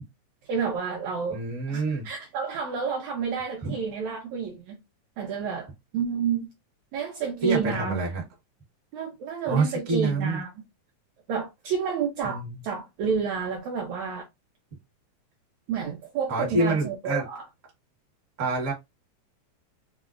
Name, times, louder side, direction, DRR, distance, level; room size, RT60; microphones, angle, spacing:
voice 1, 0.5-1.4 1.7-4.8 5.2-6.5 6.9-8.0 8.9-10.5 11.3-14.2 15.7-17.4, right 6 dB, 75° right, 1.7 m, -30 dB
voice 2, 1.3-2.0 3.6-3.7 7.4-8.2 9.5-10.4 12.2-12.5 16.3-17.2 18.4-18.7, right 3 dB, 45° right, 0.9 m, -26 dB
6.0 x 2.0 x 2.5 m
omnidirectional pair, 3.9 m